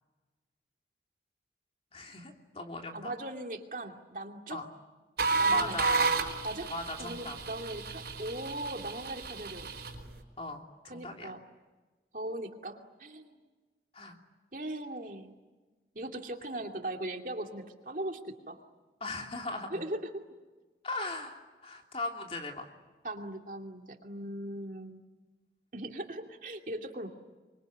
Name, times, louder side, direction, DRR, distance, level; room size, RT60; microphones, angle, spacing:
voice 1, 1.9-3.1 4.5-4.7 5.3-6.1 6.7-7.4 10.4-11.4 13.9-14.2 19.0-19.8 20.8-22.7, left 2 dB, 35° left, 3 dB, 3.0 m, -38 dB
voice 2, 2.9-4.6 5.4-6.1 6.4-6.7 7.0-9.7 10.9-11.4 12.1-13.4 14.5-15.3 15.9-18.6 19.7-20.1 23.0-25.0 25.7-27.1, right 1 dB, 50° right, 4 dB, 2.6 m, -39 dB
sound 1, 5.2-10.0, right 4 dB, 65° right, 4.7 m, -31 dB
26.5 x 24.0 x 9.3 m, 1.3 s
head